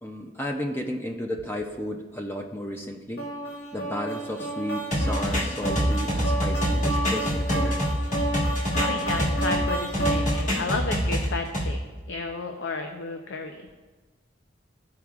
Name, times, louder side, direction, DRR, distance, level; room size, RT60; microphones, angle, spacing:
voice 1, 0.0-3.3 3.7-7.9, equal, 10° left, 2 dB, 0.4 m, -33 dB
sound 1, 3.2-10.6, right 1 dB, 55° left, 1.3 m, -31 dB
sound 2, 4.9-9.6 9.9-11.7, equal, 40° left, 1.7 m, -25 dB
voice 2, 8.8-11.8 12.1-13.6, left 3 dB, 90° left, 4 dB, 0.5 m, -32 dB
13.5 x 4.6 x 2.4 m, 1.3 s
head